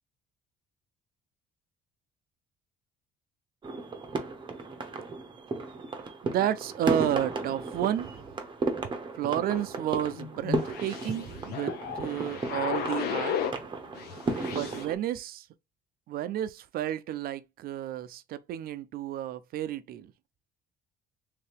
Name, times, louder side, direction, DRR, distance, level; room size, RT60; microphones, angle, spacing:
sound 1, 3.6-14.9, right 3 dB, 30° right, 0.8 m, -34 dB
voice 1, 6.2-8.3 9.2-13.4 14.4-15.5 16.1-20.1, right 11 dB, 60° right, 0.5 m, -31 dB
sound 2, 9.5-13.6 14.0-14.9, left 8 dB, 70° left, 0.7 m, -35 dB
3.3 x 2.8 x 3.3 m
cardioid pair, 110°, 17 cm